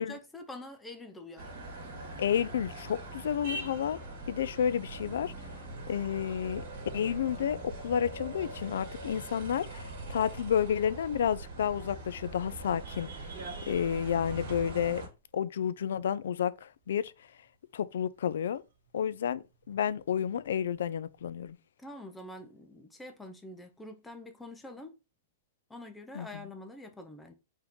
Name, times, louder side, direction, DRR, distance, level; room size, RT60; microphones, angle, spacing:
voice 1, 0.0-1.5 21.8-25.0 25.7-27.3, left 1 dB, 5° left, 0.5 m, -46 dB
sound 1, 1.4-15.1, right 2 dB, 45° right, 2.0 m, -42 dB
voice 2, 2.2-4.0 4.3-5.3 5.9-6.6 6.9-13.1 13.7-15.0 15.3-17.1 17.7-18.6 18.9-21.6 26.1-26.3, left 8 dB, 70° left, 0.4 m, -31 dB
sound 2, 6.4-15.2 16.3-16.4 18.5-18.6 18.9-21.4, right 5 dB, 65° right, 0.6 m, -49 dB
4.6 x 2.8 x 3.6 m
supercardioid pair, 170°, 0 cm